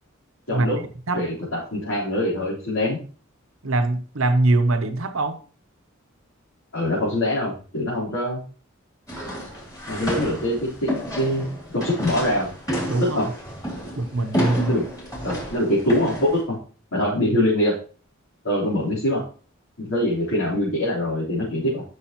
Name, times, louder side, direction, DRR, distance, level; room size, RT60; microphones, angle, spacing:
voice 1, 0.5-0.8 1.1-3.0 6.7-8.4 9.9-11.4 11.7-12.5 13.1-13.3 14.6-14.8 15.2-16.5 16.9-17.7 18.4-19.2 19.8-21.8, left 1 dB, 85° left, 3.9 m, -23 dB
voice 2, 3.6-5.4 12.9-13.2 14.0-14.7, right 2 dB, 70° right, 0.9 m, -22 dB
sound 1, 9.1-16.4, equal, 15° left, 3.0 m, -30 dB
11.5 x 6.2 x 3.0 m
head